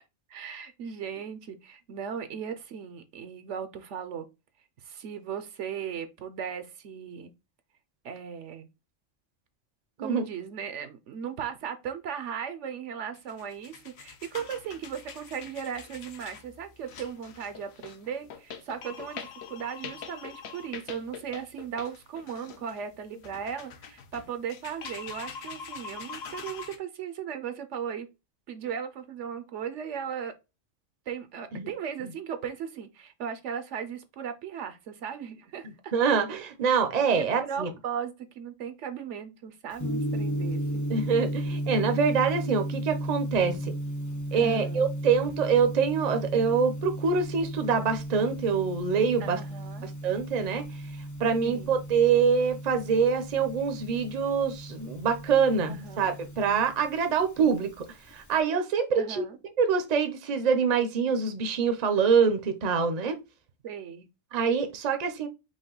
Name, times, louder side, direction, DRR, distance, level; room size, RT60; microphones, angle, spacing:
voice 1, 0.3-4.3 4.8-7.3 8.0-8.7 10.0-28.1 28.5-30.3 31.1-35.9 37.1-40.9 44.3-44.8 49.2-49.9 51.4-51.8 55.7-56.1 57.4-57.6 58.9-59.4 63.6-64.1, right 7 dB, 70° right, 1.0 m, -37 dB
sound 1, 13.1-26.8, left 6 dB, 60° left, 0.9 m, -43 dB
voice 2, 35.9-37.7 40.9-43.7 44.3-49.4 49.8-50.7 51.2-57.7 58.1-59.2 59.6-63.2 64.3-65.3, right 6 dB, 40° right, 0.6 m, -25 dB
Gong, 39.7-58.4, right 1 dB, 25° left, 0.4 m, -35 dB
5.2 x 2.2 x 3.8 m
omnidirectional pair, 1.3 m